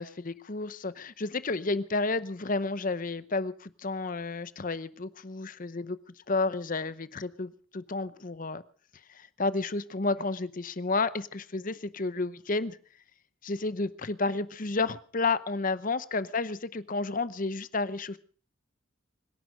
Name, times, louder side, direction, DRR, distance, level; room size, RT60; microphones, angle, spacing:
voice 1, 0.0-6.0 6.3-8.6 9.1-12.8 13.4-18.2, left 3 dB, 40° left, 0.8 m, -31 dB
25.0 x 11.0 x 5.1 m
head